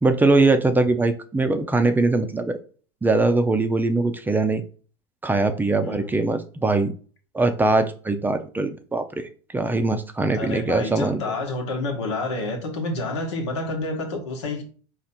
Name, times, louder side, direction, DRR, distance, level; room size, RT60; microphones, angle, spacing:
voice 1, 0.0-2.6 3.0-4.6 5.2-6.9 7.3-11.2, right 2 dB, 15° right, 7 dB, 0.5 m, -21 dB
voice 2, 5.8-6.1 10.3-14.6, left 2 dB, 80° left, 4 dB, 1.2 m, -29 dB
4.3 x 2.5 x 4.2 m, 0.41 s
hypercardioid pair, 85°, 15 cm